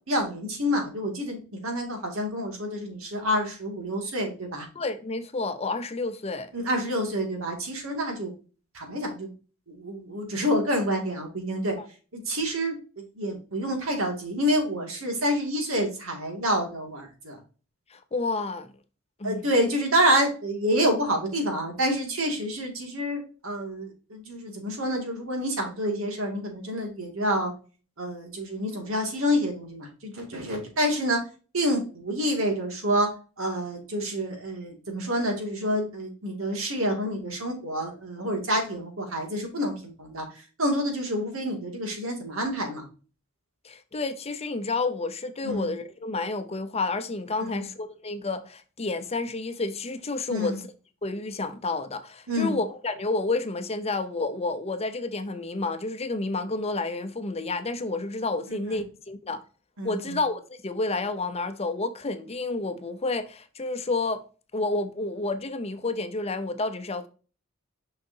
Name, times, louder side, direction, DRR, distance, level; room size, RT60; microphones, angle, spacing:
voice 1, 0.1-4.7 6.5-8.3 8.7-9.3 9.7-11.8 12.1-17.4 19.2-27.5 28.0-31.2 31.5-42.9 45.4-45.7 47.5-47.7 50.3-50.6 52.3-52.6 58.5-58.6 59.8-60.2, equal, 85° right, 2.3 m, -28 dB
voice 2, 4.7-6.5 17.9-18.7 19.2-19.4 43.6-50.6 51.0-59.4 59.8-64.2 64.5-67.1, left 3 dB, 30° left, 0.7 m, -30 dB
6.5 x 5.7 x 2.7 m
head